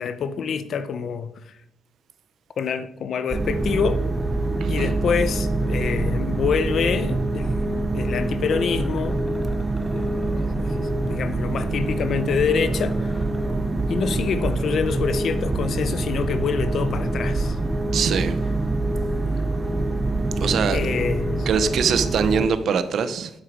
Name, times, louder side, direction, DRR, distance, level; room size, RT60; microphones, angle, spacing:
voice 1, 0.0-1.5 2.6-4.0 4.7-9.2 9.9-10.1 10.6-13.1 13.9-17.6 20.7-21.5, left 6 dB, 55° left, 0.8 m, -26 dB
sound 1, 3.3-22.5, right 2 dB, 15° right, 0.8 m, -25 dB
voice 2, 4.6-4.9 17.9-18.4 20.4-20.8 21.5-23.3, right 6 dB, 60° right, 0.7 m, -23 dB
sound 2, 5.4-22.6, left 1 dB, 10° left, 1.4 m, -44 dB
9.1 x 8.3 x 5.0 m
cardioid pair, 150°, 0 cm